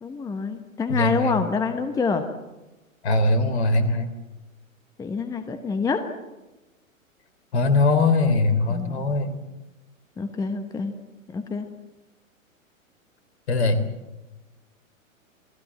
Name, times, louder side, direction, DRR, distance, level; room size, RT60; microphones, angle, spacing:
voice 1, 0.0-2.3 5.0-6.0 8.7-9.0 10.2-10.9 11.3-11.7, left 5 dB, 10° left, 8 dB, 1.1 m, -26 dB
voice 2, 0.9-1.5 3.0-4.1 7.5-9.4 13.5-13.8, left 2 dB, 50° left, 11 dB, 3.5 m, -21 dB
28.5 x 19.5 x 7.5 m, 1.1 s
figure-of-eight pair, 110°, 41 cm